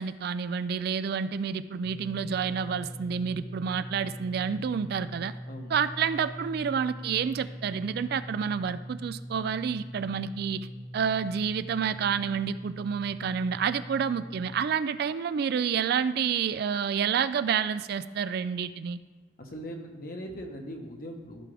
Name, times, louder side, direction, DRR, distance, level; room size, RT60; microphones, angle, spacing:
voice 1, 0.0-5.3 5.7-10.7 10.9-19.0, right 7 dB, 55° right, 14 dB, 0.3 m, -29 dB
sound 1, 1.8-14.7, equal, 30° left, 1.2 m, -42 dB
voice 2, 19.4-21.5, equal, 50° left, 3 dB, 1.1 m, -40 dB
14.5 x 5.0 x 3.4 m, 1.3 s
head